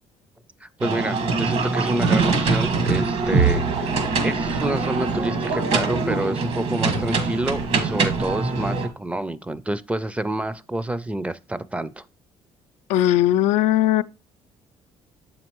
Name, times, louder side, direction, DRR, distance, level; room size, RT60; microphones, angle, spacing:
voice 1, 0.6-12.0, right 1 dB, 10° right, 0.4 m, -28 dB
sound 1, 0.8-8.9, right 4 dB, 70° right, 1.5 m, -23 dB
sound 2, 3.3-7.3, right 5 dB, 85° right, 2.0 m, -28 dB
voice 2, 12.9-14.0, left 13 dB, 80° left, 0.4 m, -18 dB
7.4 x 5.3 x 3.0 m
cardioid pair, 85°, 12 cm